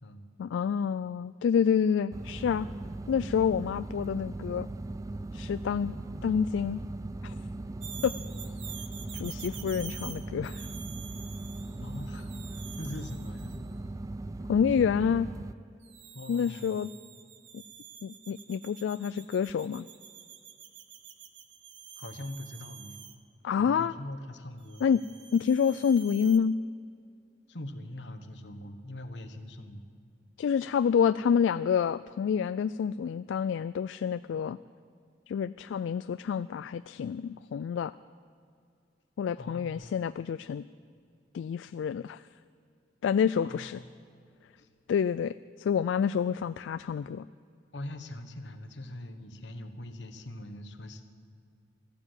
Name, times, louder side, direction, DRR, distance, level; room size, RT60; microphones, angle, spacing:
voice 1, 0.4-2.7 3.1-4.7 5.3-6.8 7.2-7.3 8.0-8.1 9.1-10.7 14.5-15.3 16.3-16.9 18.0-19.9 23.4-23.9 24.8-25.0 25.3-26.6 30.4-34.6 35.3-37.9 39.2-40.6 41.3-42.2 43.0-43.8 44.9-47.2, left 7 dB, 90° left, 14 dB, 0.3 m, -28 dB
sound 1, 2.1-15.5, right 2 dB, 20° right, 0.4 m, -39 dB
sound 2, 7.8-13.7 15.8-23.2 24.7-26.4, right 9 dB, 75° right, 1.0 m, -48 dB
voice 2, 11.8-13.8 16.1-16.8 22.0-23.0 23.6-24.9 27.5-29.9 39.4-39.9 43.4-43.8 44.6-44.7 47.7-51.0, left 1 dB, 70° left, 6 dB, 1.3 m, -42 dB
14.0 x 12.0 x 8.1 m, 2.4 s
head